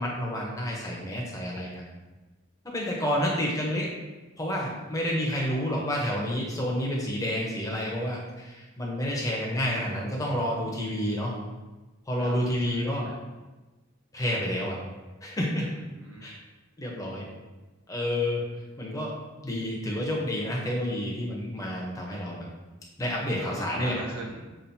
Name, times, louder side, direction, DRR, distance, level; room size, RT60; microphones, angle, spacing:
voice 1, 0.0-1.9 2.7-3.9 4.4-11.3 12.1-13.1 14.1-14.8 15.2-15.7 16.2-16.4 16.8-17.2 17.9-18.4 18.8-19.1 19.4-22.5 23.0-24.0, equal, 15° left, -3 dB, 0.7 m, -29 dB
voice 2, 12.2-13.2 15.6-16.4 23.3-24.6, right 1 dB, 85° right, -2 dB, 1.0 m, -42 dB
6.9 x 2.5 x 2.7 m, 1.2 s
head